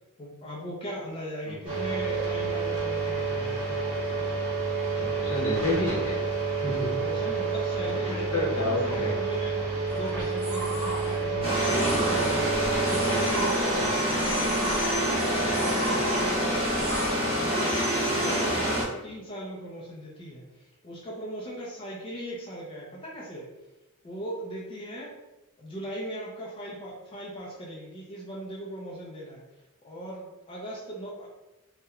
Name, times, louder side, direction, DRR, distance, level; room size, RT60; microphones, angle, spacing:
voice 1, 0.2-3.6 6.9-17.5 18.1-20.5 20.8-23.5 24.0-25.1 25.6-29.4 29.8-31.3, right 1 dB, 25° left, -5 dB, 0.4 m, -38 dB
sound 1, 1.6-13.3, right 4 dB, 60° right, 1.3 m, -29 dB
voice 2, 5.1-6.2 6.6-6.9 8.3-9.1, left 1 dB, 70° left, -4 dB, 0.9 m, -28 dB
sound 2, 9.9-17.1, equal, 80° right, 0.8 m, -37 dB
sound 3, 11.4-18.8, equal, 25° right, 0.8 m, -26 dB
2.8 x 2.1 x 2.3 m, 1.0 s
head